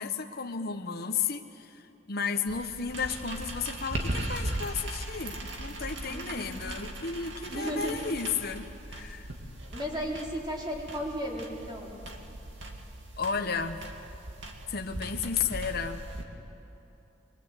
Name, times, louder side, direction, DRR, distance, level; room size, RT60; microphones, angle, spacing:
voice 1, 0.0-9.3 13.2-13.8 14.7-16.0, left 6 dB, 55° left, 5 dB, 1.0 m, -33 dB
sound 1, 2.5-16.2, right 1 dB, 65° right, 2.3 m, -39 dB
voice 2, 6.1-6.5 7.5-8.1 9.7-11.9, equal, 25° right, -3 dB, 4.2 m, -35 dB
23.0 x 22.5 x 8.3 m, 3.0 s
head